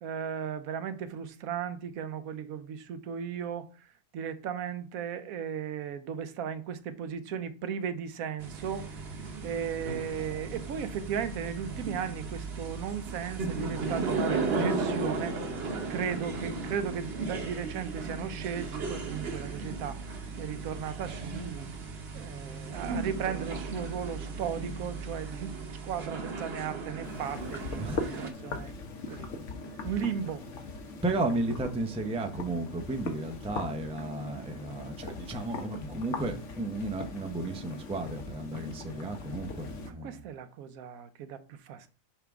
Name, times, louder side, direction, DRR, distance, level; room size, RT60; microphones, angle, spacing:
voice 1, 0.0-3.9 4.1-9.0 9.4-15.4 15.9-20.0 20.4-21.7 22.1-25.6 25.8-28.8 29.1-29.3 29.8-30.5 40.0-41.9, right 7 dB, 85° right, 1.1 m, -36 dB
sound 1, 8.4-28.3, right 3 dB, 50° right, 1.0 m, -36 dB
sound 2, 27.0-39.9, left 3 dB, 60° left, 1.2 m, -40 dB
voice 2, 27.8-28.1 29.1-29.4 31.0-40.2, right 2 dB, 10° right, 0.3 m, -34 dB
5.7 x 4.9 x 3.5 m
omnidirectional pair, 1.4 m